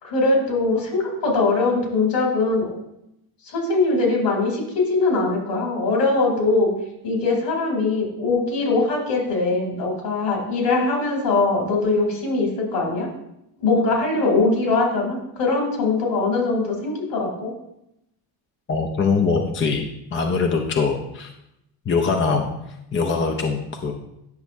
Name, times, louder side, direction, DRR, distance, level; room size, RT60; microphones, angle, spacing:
voice 1, 0.0-2.7 3.4-6.7 7.0-13.1 13.6-17.5, left 3 dB, 65° left, -1 dB, 3.2 m, -21 dB
voice 2, 18.7-21.3 21.9-22.5 22.9-23.9, left 4 dB, 25° left, 3 dB, 0.6 m, -22 dB
10.5 x 5.9 x 2.6 m, 0.82 s
cardioid pair, 105°, 45 cm